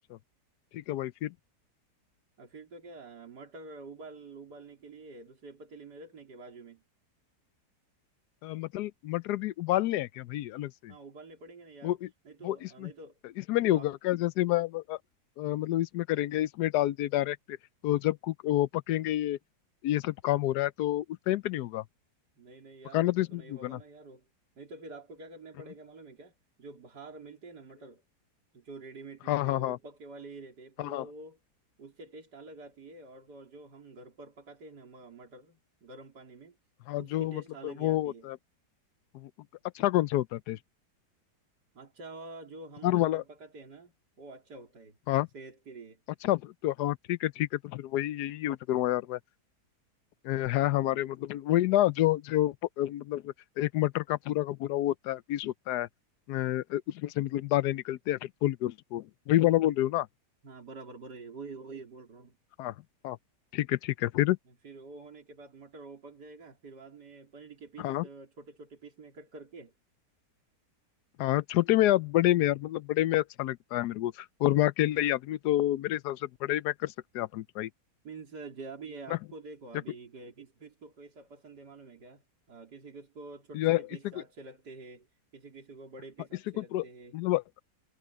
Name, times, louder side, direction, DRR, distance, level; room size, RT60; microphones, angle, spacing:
voice 1, 0.7-1.3 8.4-10.9 11.8-12.1 12.4-12.6 12.8-12.9 13.5-15.0 15.4-17.6 17.8-19.4 19.8-21.8 22.9-23.8 29.3-29.8 30.8-31.1 36.9-38.4 39.1-39.3 39.7-40.6 42.8-43.2 45.1-45.3 46.2-49.2 50.2-55.9 56.3-60.1 62.6-62.7 63.0-63.2 63.5-64.4 67.8-68.0 71.2-77.7 83.5-83.8 86.6-86.8 87.1-87.4, left 15 dB, 75° left, 1.1 m, -28 dB
voice 2, 2.4-6.8 10.9-12.0 12.2-13.2 13.5-13.9 22.4-24.3 24.6-26.3 26.6-28.0 28.5-31.4 31.8-36.6 37.0-38.3 41.7-45.0 45.3-46.0 50.6-51.1 60.4-62.4 64.5-69.7 78.0-85.1 85.3-87.2, right 3 dB, 75° right, 4.1 m, -47 dB
omnidirectional pair, 1.8 m